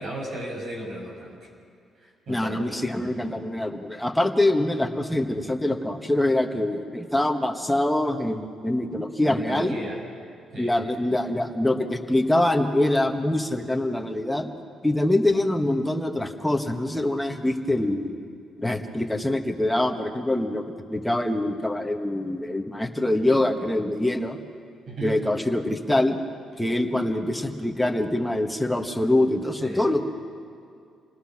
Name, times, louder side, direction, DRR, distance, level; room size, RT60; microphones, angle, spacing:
voice 1, 0.0-1.5 2.0-2.8 9.2-10.0 10.5-10.7 24.9-25.2 29.6-29.8, right 1 dB, 50° right, -1 dB, 6.0 m, -35 dB
voice 2, 2.3-9.8 10.6-14.5 14.8-18.1 18.6-20.6 20.9-24.4 25.0-26.2 26.6-30.0, left 1 dB, 5° left, 4 dB, 1.4 m, -24 dB
28.0 x 20.0 x 6.0 m, 2.4 s
cardioid pair, 130°, 0 cm